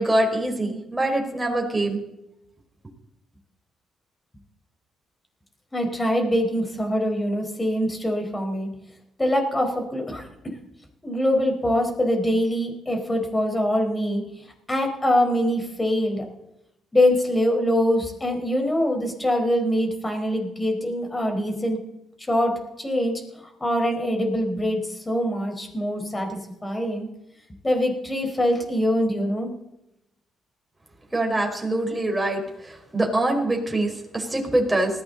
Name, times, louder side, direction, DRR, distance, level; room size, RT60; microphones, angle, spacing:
voice 1, 0.0-2.0 31.1-35.0, right 1 dB, 10° right, 1 dB, 4.5 m, -24 dB
voice 2, 5.7-8.7 9.2-10.3 11.0-14.2 14.7-16.2 16.9-21.8 22.3-27.1 27.6-29.5, equal, 20° left, 3 dB, 4.6 m, -24 dB
19.5 x 15.0 x 4.0 m, 0.87 s
cardioid pair, 90°, 0 cm